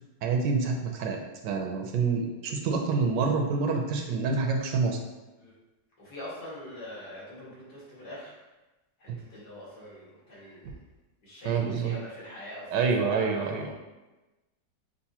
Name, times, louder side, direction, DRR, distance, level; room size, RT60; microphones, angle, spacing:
voice 1, 0.2-5.0 11.4-11.9 12.7-13.7, right 4 dB, 80° right, 2 dB, 1.2 m, -27 dB
voice 2, 6.0-8.4 9.0-10.8 11.2-13.7, left 1 dB, 65° left, -8 dB, 2.3 m, -43 dB
6.6 x 2.5 x 2.8 m, 1.1 s
omnidirectional pair, 1.9 m